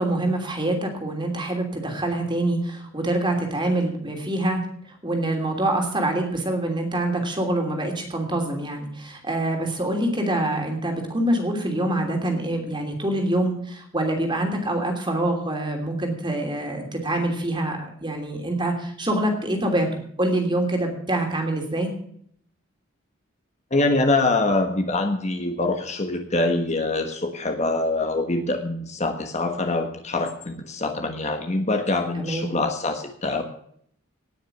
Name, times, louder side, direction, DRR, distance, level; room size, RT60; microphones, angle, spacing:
voice 1, 0.0-4.6 4.9-21.9 32.1-32.5, right 1 dB, 20° right, 3 dB, 3.0 m, -25 dB
voice 2, 23.7-33.4, left 2 dB, 35° left, 5 dB, 1.3 m, -24 dB
18.5 x 6.5 x 6.7 m, 0.64 s
head